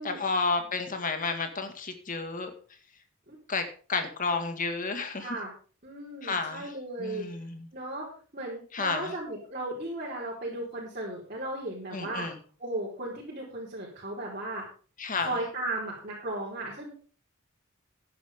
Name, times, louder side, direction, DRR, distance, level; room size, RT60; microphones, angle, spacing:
voice 1, 0.0-2.5 3.5-3.6 3.9-5.4 6.2-6.7 7.0-7.7 8.7-9.1 11.9-12.4 15.0-15.4, left 4 dB, 40° left, 6 dB, 2.1 m, -31 dB
voice 2, 5.2-5.5 5.8-7.3 7.7-8.1 8.3-12.3 12.6-14.6 15.2-16.9, right 1 dB, 40° right, -7 dB, 4.6 m, -35 dB
14.5 x 10.5 x 3.8 m, 0.40 s
head